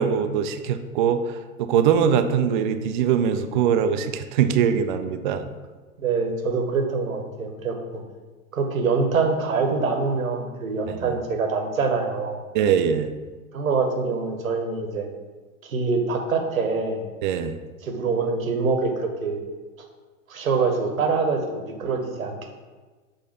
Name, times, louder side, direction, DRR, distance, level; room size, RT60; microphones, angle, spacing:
voice 1, 0.0-5.5 10.9-11.1 12.5-13.1 17.2-17.6, right 8 dB, 40° right, 8 dB, 0.4 m, -22 dB
voice 2, 6.0-8.0 8.5-12.4 13.5-15.1 15.6-17.0 17.8-19.4 20.3-22.5, right 4 dB, 75° right, 3 dB, 1.0 m, -25 dB
6.4 x 2.6 x 5.6 m, 1.3 s
figure-of-eight pair, 95°, 41 cm